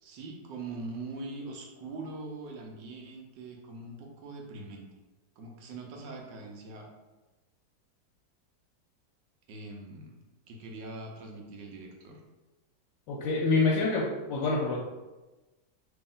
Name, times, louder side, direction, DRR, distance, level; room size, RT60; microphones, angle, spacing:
voice 1, 0.0-4.9 5.4-6.9 9.5-10.2 10.5-12.2, right 3 dB, 90° right, 0 dB, 1.4 m, -42 dB
voice 2, 13.1-14.8, left 3 dB, 85° left, -4 dB, 1.3 m, -26 dB
3.1 x 3.0 x 3.7 m, 1.1 s
omnidirectional pair, 1.9 m